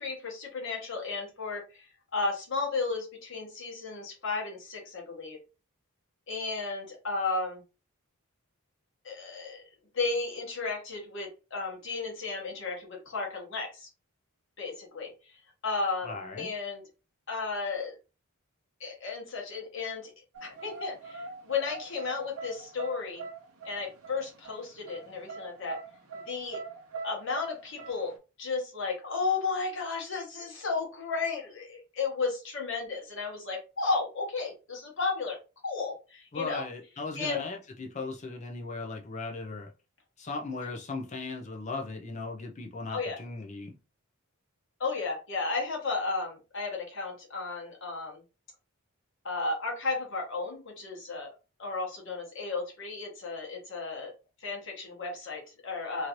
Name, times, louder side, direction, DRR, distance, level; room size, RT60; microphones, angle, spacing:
voice 1, 0.0-5.4 6.3-7.6 9.0-9.6 9.9-13.9 14.6-15.1 15.6-16.8 17.3-17.9 18.8-20.1 20.4-23.2 23.6-25.8 26.1-26.6 27.0-28.1 28.4-35.4 35.6-36.6 37.1-37.4 42.9-43.2 44.8-48.2 49.2-51.3 51.6-54.1 54.4-56.1, left 4 dB, 55° left, 1.2 m, -33 dB
voice 2, 16.0-16.5 36.3-39.7 40.2-43.7, left 3 dB, 30° left, 0.4 m, -37 dB
sound 1, 20.3-28.1, right 4 dB, 80° right, 0.7 m, -43 dB
3.0 x 2.5 x 2.9 m
head